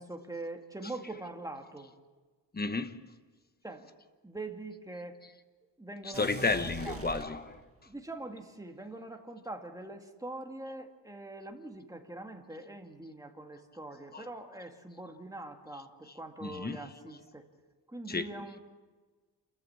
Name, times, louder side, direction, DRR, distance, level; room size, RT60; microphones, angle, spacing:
voice 1, 0.0-1.9 3.6-3.9 4.2-5.2 5.8-6.5 6.8-7.2 7.9-17.5 17.9-18.6, right 2 dB, 10° right, 2.1 m, -43 dB
voice 2, 2.5-3.0 6.0-7.6 14.1-14.2 16.4-16.9 18.1-18.3, left 3 dB, 25° left, 1.1 m, -32 dB
sound 1, 6.1-7.9, right 4 dB, 35° right, 1.6 m, -44 dB
28.5 x 14.5 x 8.7 m
wide cardioid pair, 130°, 41 cm